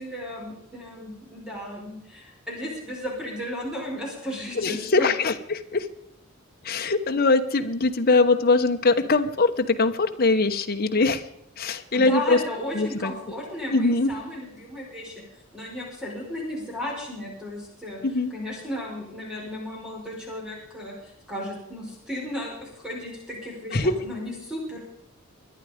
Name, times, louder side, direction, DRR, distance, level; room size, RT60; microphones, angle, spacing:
voice 1, 0.0-5.1 11.9-15.2 15.5-18.0 18.3-24.8, left 1 dB, 5° right, -2 dB, 5.1 m, -34 dB
voice 2, 4.6-5.9 6.6-11.2 11.6-12.4 12.7-13.1 13.7-14.1 18.0-18.3 23.7-24.0, left 3 dB, 45° left, 5 dB, 1.0 m, -22 dB
23.0 x 10.5 x 5.1 m, 0.77 s
head